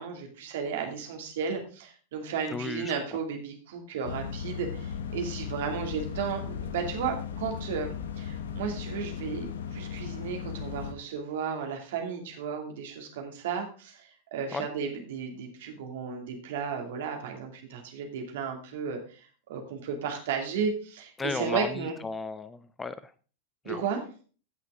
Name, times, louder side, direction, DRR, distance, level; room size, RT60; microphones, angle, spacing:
voice 1, 0.0-21.9 23.6-24.0, right 6 dB, 55° right, 3 dB, 2.5 m, -34 dB
voice 2, 2.5-2.9 14.5-14.7 21.2-23.1 23.7-23.8, left 4 dB, 15° left, 14 dB, 0.5 m, -34 dB
sound 1, 4.0-10.9, left 7 dB, 60° left, 1.0 m, -37 dB
15.5 x 5.8 x 3.6 m, 0.38 s
figure-of-eight pair, 90°, 0 cm